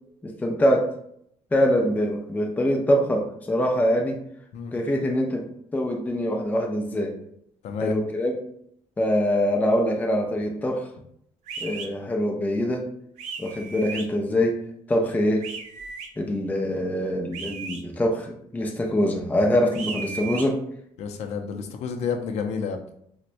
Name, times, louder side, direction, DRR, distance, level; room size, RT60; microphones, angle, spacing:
voice 1, 0.2-0.9 1.5-4.2 4.7-7.1 7.8-8.4 9.0-10.9 11.6-12.9 13.4-14.6 14.9-15.5 16.2-20.6, equal, 15° left, 0 dB, 0.5 m, -24 dB
voice 2, 7.6-8.0 21.0-22.8, left 6 dB, 65° left, 5 dB, 0.5 m, -30 dB
sound 1, 11.5-11.9 13.2-14.1 15.4-16.1 17.3-17.8 19.7-20.5, right 5 dB, 80° right, 0.5 m, -35 dB
4.1 x 2.1 x 2.5 m, 0.69 s
cardioid pair, 110°, 12 cm